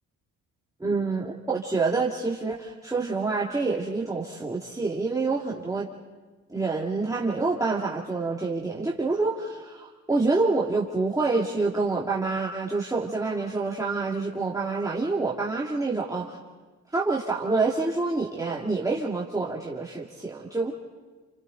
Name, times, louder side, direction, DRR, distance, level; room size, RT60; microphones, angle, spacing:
voice 1, 0.8-5.9 6.5-16.4 16.9-20.7, right 3 dB, 10° right, -5 dB, 2.4 m, -27 dB
29.0 x 28.5 x 4.0 m, 1.3 s
cardioid pair, 90°, 30 cm